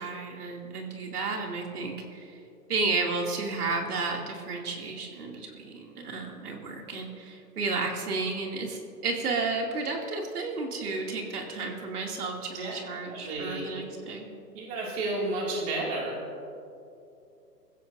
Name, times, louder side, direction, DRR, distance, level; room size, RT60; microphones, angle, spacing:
voice 1, 0.0-2.4 2.7-14.3, right 3 dB, 65° right, 0 dB, 2.6 m, -32 dB
voice 2, 13.1-13.7 14.5-16.3, right 2 dB, 15° right, -3 dB, 2.3 m, -32 dB
25.0 x 15.5 x 2.6 m, 2.6 s
hypercardioid pair, 165°, 49 cm